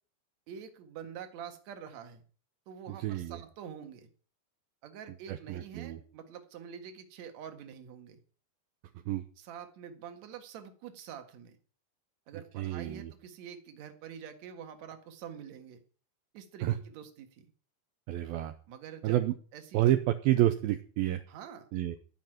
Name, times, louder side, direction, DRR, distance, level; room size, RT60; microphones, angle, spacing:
voice 1, 0.5-2.2 2.7-4.1 4.8-8.2 9.4-11.6 12.3-15.8 16.3-17.5 18.7-19.2 19.5-19.8 21.3-21.7, right 8 dB, 55° right, 6 dB, 2.4 m, -46 dB
voice 2, 3.0-3.4 5.3-6.0 9.1-9.2 12.6-13.1 16.6-16.7 18.1-18.5 19.0-19.3 19.7-21.2 21.7-22.0, right 13 dB, 75° right, 8 dB, 2.3 m, -29 dB
16.5 x 5.8 x 9.1 m, 0.42 s
omnidirectional pair, 4.8 m